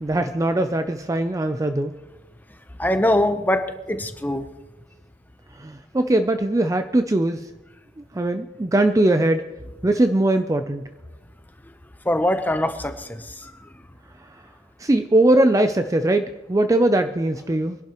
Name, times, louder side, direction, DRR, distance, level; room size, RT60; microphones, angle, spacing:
voice 1, 0.0-1.9 5.6-7.4 8.1-9.5 9.8-10.9 14.8-17.8, right 1 dB, 15° right, 8 dB, 0.4 m, -20 dB
voice 2, 2.8-4.5 12.0-13.7, left 1 dB, 10° left, 8 dB, 0.7 m, -23 dB
24.0 x 11.5 x 3.0 m, 1.0 s
head